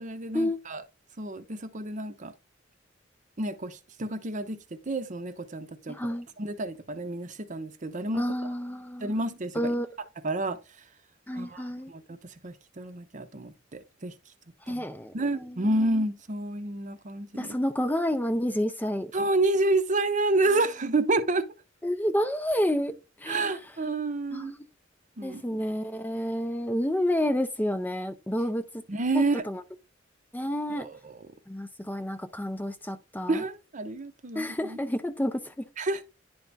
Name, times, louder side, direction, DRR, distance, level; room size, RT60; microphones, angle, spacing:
voice 1, 0.0-0.8 1.2-2.3 3.4-4.6 4.9-5.9 6.4-8.2 9.0-9.6 10.2-10.6 11.4-12.0 12.4-14.1 14.7-14.8 15.1-17.5 19.1-21.5 23.3-24.5 25.2-25.6 28.9-29.4 30.8-31.0 33.3-34.8 35.8-36.0, right 2 dB, 40° right, 0.7 m, -29 dB
voice 2, 5.9-6.3 8.1-9.3 9.5-9.9 11.3-11.9 14.6-15.9 17.4-19.1 20.5-20.6 21.8-23.7 24.3-24.6 25.2-28.7 29.1-29.6 30.3-30.9 31.5-33.4 34.3-35.6, equal, 10° left, 0.5 m, -30 dB
10.0 x 3.4 x 3.9 m
head